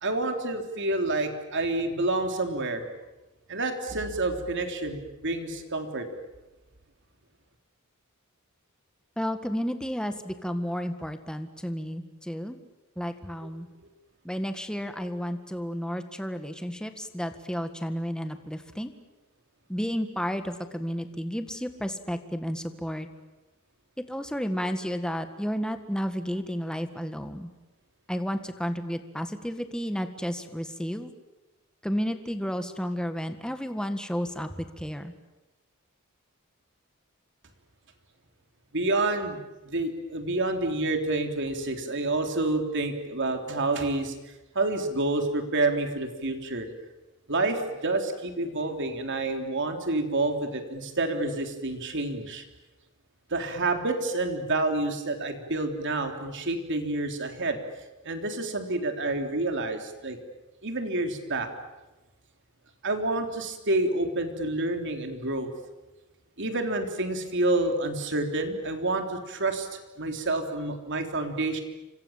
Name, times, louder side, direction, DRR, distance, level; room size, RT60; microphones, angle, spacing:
voice 1, 0.0-2.8 3.5-6.1 38.7-39.4 39.7-44.2 44.6-46.7 47.3-52.4 53.3-57.6 58.0-60.2 60.6-61.5 62.8-65.5 66.4-71.6, right 2 dB, 60° right, 5 dB, 3.6 m, -28 dB
voice 2, 9.2-12.6 13.0-13.7 14.2-18.9 19.7-23.1 24.0-27.5 28.1-31.1 31.8-35.1, equal, 5° left, 8 dB, 1.7 m, -32 dB
30.0 x 25.5 x 7.4 m, 1.1 s
head